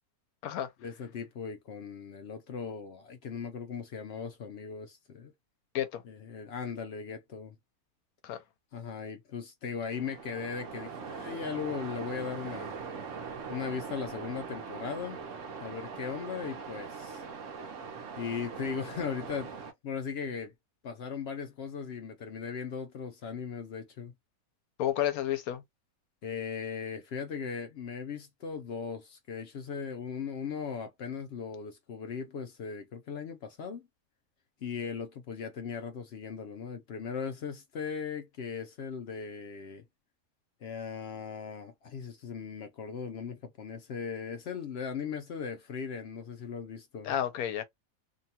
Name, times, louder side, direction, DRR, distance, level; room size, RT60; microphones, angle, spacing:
voice 1, 0.8-5.3 6.0-7.5 8.7-12.7 13.5-15.2 15.6-17.2 18.2-19.5 19.8-20.5 20.8-24.1 26.2-33.9 34.6-39.8 40.6-47.1, left 6 dB, 65° left, 0.6 m, -38 dB
Waves surf, 9.9-19.7, right 5 dB, 65° right, 1.0 m, -41 dB
voice 2, 24.8-25.6 47.0-47.6, left 11 dB, 90° left, 1.1 m, -31 dB
2.9 x 2.2 x 2.7 m
omnidirectional pair, 1.5 m